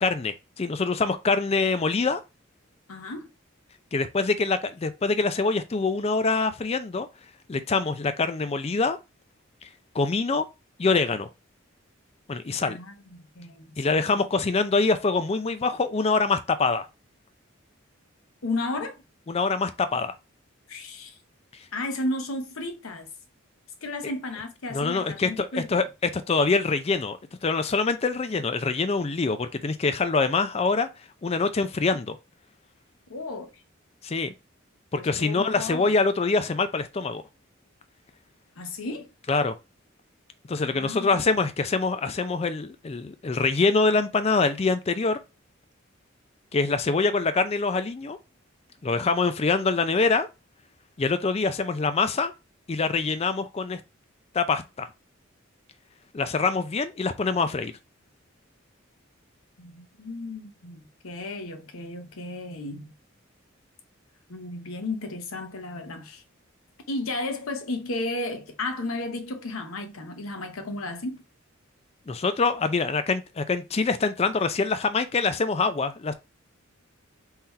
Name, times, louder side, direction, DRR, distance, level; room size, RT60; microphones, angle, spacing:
voice 1, 0.0-2.2 3.9-7.1 7.5-9.0 9.9-10.4 10.8-11.3 12.3-12.8 13.8-16.9 19.3-20.1 24.7-25.8 26.1-27.2 27.4-30.9 31.2-32.2 34.0-34.3 34.9-37.2 39.3-39.6 40.5-45.2 46.5-48.2 48.8-50.3 51.0-52.3 52.7-53.8 54.3-54.9 56.1-57.7 72.1-76.1, left 4 dB, 30° left, 0.4 m, -25 dB
voice 2, 2.9-3.3 12.6-14.2 18.4-19.0 20.7-21.2 21.7-23.1 23.8-25.8 33.1-33.5 35.0-35.9 38.6-39.1 40.6-41.2 59.6-62.9 64.3-66.2 66.9-71.2, left 2 dB, 85° left, 0.9 m, -34 dB
3.8 x 2.8 x 4.4 m
head